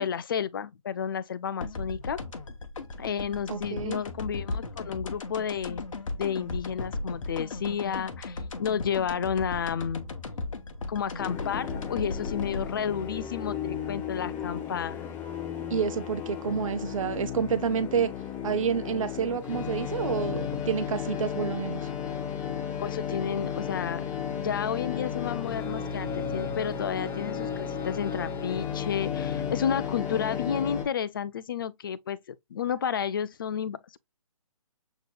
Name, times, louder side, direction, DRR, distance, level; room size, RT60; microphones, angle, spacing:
voice 1, 0.0-2.2 3.0-5.8 6.2-10.1 10.9-15.1 22.8-24.1 24.3-34.0, left 8 dB, 35° left, 0.4 m, -31 dB
sound 1, 1.6-14.4, left 3 dB, 60° left, 1.1 m, -37 dB
voice 2, 3.5-4.0 15.7-18.1 18.4-21.9, right 6 dB, 60° right, 0.6 m, -29 dB
sound 2, 11.2-30.8, left 8 dB, 10° left, 0.7 m, -34 dB
7.7 x 3.0 x 2.2 m
hypercardioid pair, 150°, 19 cm